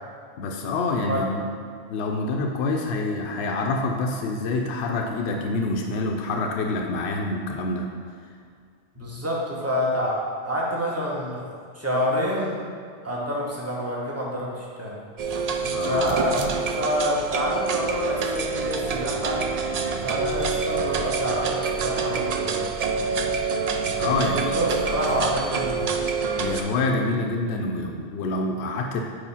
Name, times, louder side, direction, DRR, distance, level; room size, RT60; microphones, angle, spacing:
voice 1, 0.4-1.5 1.9-7.9 9.0-9.1 15.6-16.1 24.0-24.7 26.4-29.0, left 2 dB, 75° left, 1 dB, 0.9 m, -27 dB
voice 2, 8.9-12.6 13.0-15.0 15.9-19.4 20.0-22.6 24.2-26.0, equal, 15° right, -4 dB, 1.0 m, -27 dB
sound 1, 15.2-26.6, right 5 dB, 60° right, 0.4 m, -26 dB
4.9 x 4.6 x 5.5 m, 2.2 s
omnidirectional pair, 1.1 m